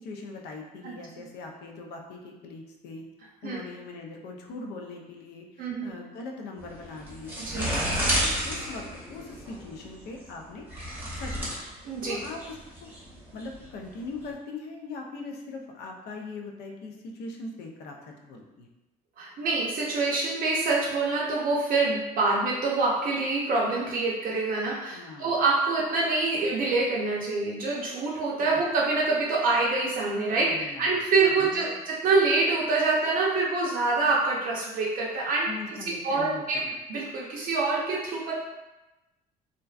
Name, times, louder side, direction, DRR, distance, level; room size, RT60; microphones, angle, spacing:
voice 1, 0.0-3.0 3.4-10.6 11.2-11.6 12.1-12.9 13.3-18.7 24.9-25.4 28.5-28.6 30.4-30.9 31.3-31.8 35.5-36.7, left 3 dB, 75° left, 2 dB, 0.4 m, -41 dB
voice 2, 5.6-5.9 7.4-7.7 11.8-12.2 19.2-35.5 35.9-36.6 36.9-38.4, right 3 dB, 55° right, -4 dB, 0.5 m, -26 dB
sound 1, 6.6-14.2, equal, 10° right, 0.7 m, -32 dB
2.5 x 2.1 x 2.3 m, 1.0 s
cardioid pair, 110°, 17 cm